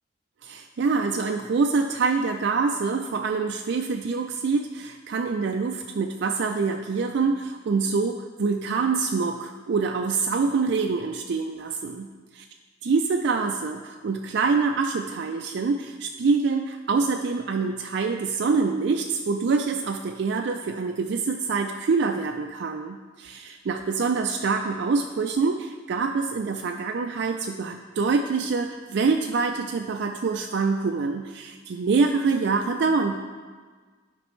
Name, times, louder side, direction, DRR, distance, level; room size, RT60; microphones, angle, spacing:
voice 1, 0.4-12.1 12.8-33.1, right 4 dB, 60° right, 4 dB, 0.4 m, -25 dB
11.5 x 5.1 x 3.1 m, 1.5 s
head